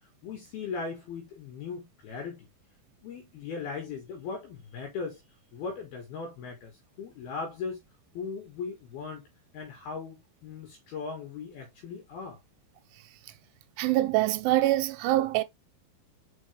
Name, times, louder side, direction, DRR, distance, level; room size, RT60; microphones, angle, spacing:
voice 1, 0.2-2.5 3.0-5.2 5.5-7.8 8.1-9.2 9.5-12.4, left 5 dB, 65° left, 3.2 m, -38 dB
voice 2, 13.8-15.4, right 16 dB, 90° right, 3.0 m, -24 dB
6.3 x 5.0 x 3.2 m
omnidirectional pair, 5.4 m